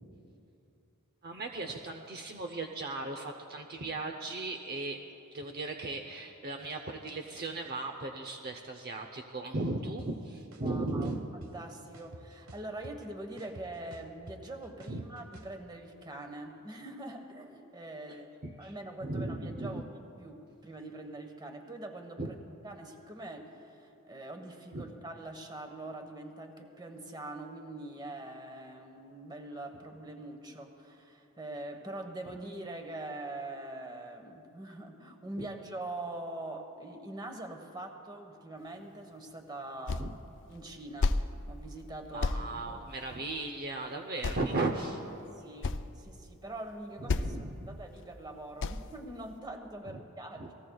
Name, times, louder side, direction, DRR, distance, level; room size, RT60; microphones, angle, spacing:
voice 1, 1.2-5.0 5.3-11.2 14.9-15.0 18.4-18.7 19.0-19.8 22.2-22.3 24.7-24.9 35.4-35.5 40.0-40.1 42.1-45.0 47.0-47.8 49.9-50.0 50.4-50.5, right 2 dB, 45° right, 4 dB, 0.7 m, -36 dB
sound 1, 10.0-10.1 10.5-11.5 11.9-13.1 13.4-15.5, right 2 dB, 75° right, 1.2 m, -49 dB
voice 2, 10.6-18.3 18.6-22.4 22.6-40.1 40.5-41.2 41.5-42.8 45.2-50.5, right 1 dB, 20° right, 4 dB, 1.3 m, -43 dB
sound 2, 39.9-40.2 40.5-41.3 41.6-41.8 42.2-42.4 43.6-43.7 44.2-44.7 45.1-45.2 45.4-45.8 46.6-46.7 47.1-47.5 47.8-48.0 48.6-48.9, left 3 dB, 55° left, 0.5 m, -31 dB
28.5 x 19.0 x 2.3 m, 2.7 s
head